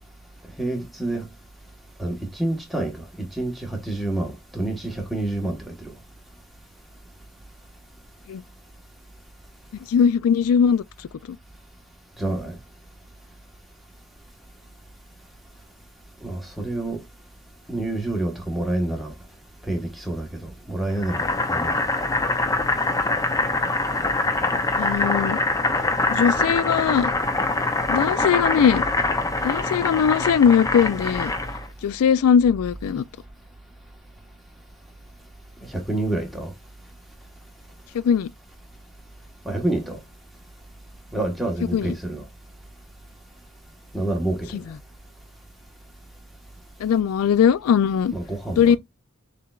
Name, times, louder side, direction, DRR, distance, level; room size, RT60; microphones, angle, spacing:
voice 1, 0.6-1.3 2.0-5.7 12.2-12.6 16.2-17.0 17.7-19.1 19.6-21.8 35.7-36.5 39.4-40.0 41.1-42.2 43.9-44.6 48.1-48.8, right 2 dB, ahead, 1.2 m, -28 dB
voice 2, 9.9-10.8 11.3-11.4 24.8-25.4 26.1-27.1 27.9-28.8 29.4-31.3 31.8-33.0 37.9-38.3 41.7-41.9 44.5-44.8 46.8-48.1 48.6-48.8, left 7 dB, 85° left, 0.3 m, -20 dB
Boiling, 21.0-31.7, left 2 dB, 15° left, 0.5 m, -24 dB
6.6 x 3.3 x 2.3 m
head